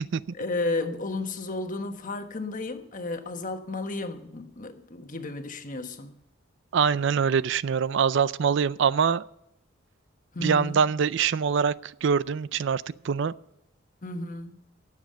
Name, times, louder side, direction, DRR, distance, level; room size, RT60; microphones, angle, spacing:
voice 1, 0.3-6.1 10.3-10.8 14.0-14.6, left 2 dB, 40° left, 1.2 m, -33 dB
voice 2, 6.7-9.2 10.4-13.3, right 6 dB, 60° right, 0.4 m, -24 dB
18.0 x 7.3 x 6.5 m
head